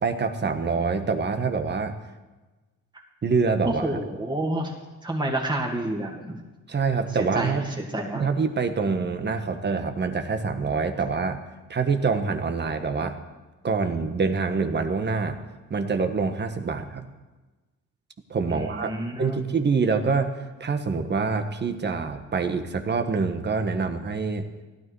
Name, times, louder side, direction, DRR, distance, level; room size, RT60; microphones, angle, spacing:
voice 1, 0.0-1.9 3.2-3.8 6.7-7.7 8.1-11.4 11.7-13.2 13.6-15.4 15.7-17.1 18.3-18.9 19.2-24.4, right 4 dB, 35° right, 7 dB, 1.4 m, -25 dB
voice 2, 3.6-4.7 5.0-6.4 7.2-8.3 18.5-19.4, right 1 dB, 15° right, -1 dB, 2.4 m, -29 dB
16.0 x 12.5 x 4.8 m, 1.2 s
cardioid pair, 90°, 30 cm